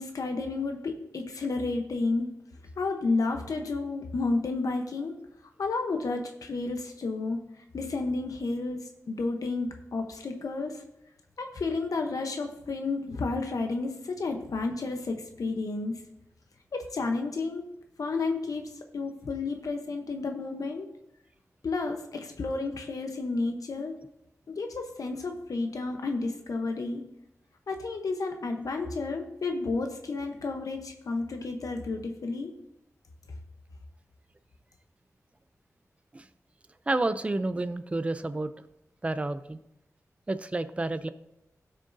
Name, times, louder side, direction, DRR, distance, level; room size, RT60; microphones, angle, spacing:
voice 1, 0.0-2.3 2.8-5.2 5.6-10.8 11.4-16.0 16.7-17.6 18.0-18.6 18.9-20.9 21.6-24.0 24.5-27.0 27.7-32.5, left 3 dB, 85° left, 4 dB, 0.9 m, -31 dB
voice 2, 36.9-38.5 39.0-39.6 40.3-41.1, right 2 dB, 20° right, 12 dB, 0.4 m, -30 dB
16.0 x 6.3 x 2.7 m, 0.85 s
wide cardioid pair, 110°, 6 cm